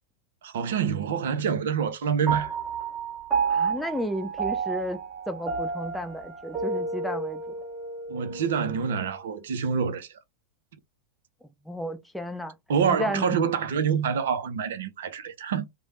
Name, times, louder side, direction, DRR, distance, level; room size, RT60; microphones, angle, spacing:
voice 1, 0.4-2.5 8.1-10.1 12.7-15.6, right 7 dB, 60° right, 0.5 m, -26 dB
Piano, 2.3-9.0, right 5 dB, 25° right, 1.4 m, -31 dB
voice 2, 3.5-5.0 5.3-7.5 11.7-12.5 12.9-13.4, equal, ahead, 0.4 m, -32 dB
3.1 x 2.0 x 2.5 m
figure-of-eight pair, 90°, 0 cm